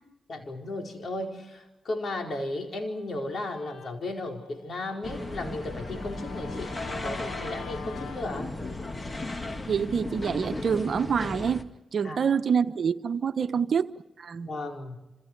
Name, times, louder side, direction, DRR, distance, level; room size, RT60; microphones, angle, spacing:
voice 1, 0.3-8.5 12.0-12.2 13.4-13.6 14.4-15.1, left 2 dB, 60° left, 4.7 m, -35 dB
Guitar, 2.7-8.2, left 6 dB, 75° left, 1.8 m, -47 dB
sound 1, 5.0-11.6, left 2 dB, 30° left, 2.3 m, -35 dB
voice 2, 9.7-13.9 14.2-14.5, right 6 dB, 60° right, 1.0 m, -26 dB
27.5 x 27.0 x 4.7 m
hypercardioid pair, 40°, 0 cm